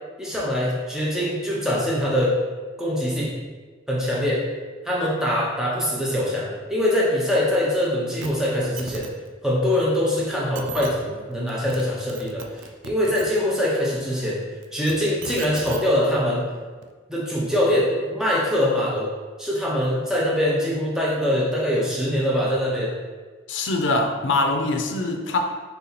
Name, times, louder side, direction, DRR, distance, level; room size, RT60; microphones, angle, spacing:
voice 1, 0.2-2.4 2.8-3.3 3.9-4.4 4.8-9.1 9.4-12.4 12.8-14.4 14.7-16.5 17.1-19.1 19.4-22.9, left 1 dB, 5° right, -5 dB, 0.7 m, -23 dB
sound 1, 8.2-8.3 8.6-9.1 10.2-10.3 10.6-10.9 11.5-11.8 12.1-13.3 14.6-15.8 16.8-16.9, right 5 dB, 70° right, 0.4 m, -36 dB
voice 2, 23.5-25.4, left 2 dB, 65° left, 4 dB, 0.5 m, -23 dB
4.0 x 2.8 x 4.0 m, 1.4 s
head